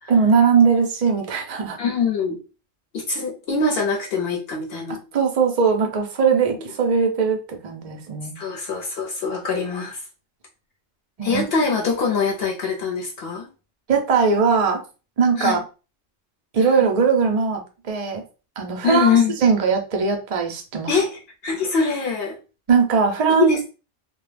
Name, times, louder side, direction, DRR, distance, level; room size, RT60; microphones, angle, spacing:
voice 1, 0.1-1.8 5.1-8.4 11.2-11.4 13.9-14.8 15.2-15.6 16.5-17.6 17.9-18.2 18.6-19.1 19.4-20.9 22.7-23.5, right 5 dB, 60° right, 3 dB, 0.4 m, -19 dB
voice 2, 1.8-2.4 2.9-5.0 6.3-6.6 8.4-10.0 11.2-13.5 15.4-15.6 16.6-16.7 18.8-19.4 20.9-22.4 23.3-23.7, left 5 dB, 60° left, 0 dB, 0.7 m, -23 dB
2.2 x 2.1 x 3.2 m, 0.33 s
omnidirectional pair, 1.3 m